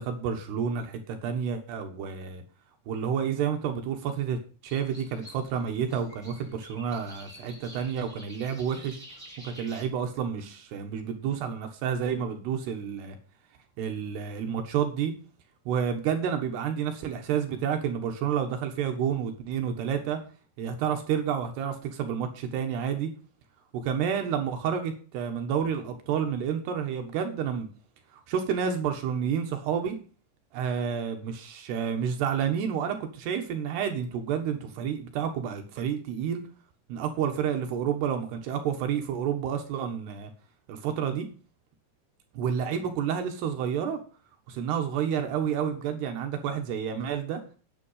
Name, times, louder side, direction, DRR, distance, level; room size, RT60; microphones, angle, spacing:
voice 1, 0.0-2.4 2.9-9.0 9.4-13.2 13.8-15.1 15.7-20.2 20.6-23.1 23.7-27.7 28.3-30.0 30.5-36.4 36.9-40.3 40.7-41.3 42.3-44.0 44.5-47.4, right 8 dB, 75° right, 5 dB, 3.4 m, -30 dB
sound 1, 4.7-9.9, equal, ahead, 6.5 m, -49 dB
9.8 x 9.3 x 5.7 m, 0.39 s
omnidirectional pair, 5.0 m